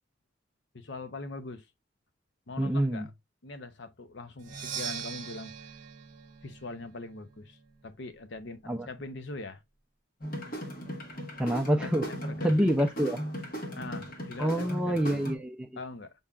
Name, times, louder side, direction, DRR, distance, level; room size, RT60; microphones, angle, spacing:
voice 1, 0.7-1.7 2.5-3.1 3.4-5.7 6.4-9.6 11.6-12.7 13.8-15.2 15.7-16.1, left 2 dB, 60° left, 0.7 m, -42 dB
voice 2, 2.6-3.1 8.7-8.9 11.4-12.1 12.4-13.2 14.4-15.8, equal, 5° right, 0.4 m, -27 dB
Percussion, 4.4-8.2, right 8 dB, 45° right, 0.9 m, -42 dB
sound 1, 10.2-15.3, equal, 45° left, 1.3 m, -37 dB
5.4 x 3.6 x 2.3 m
head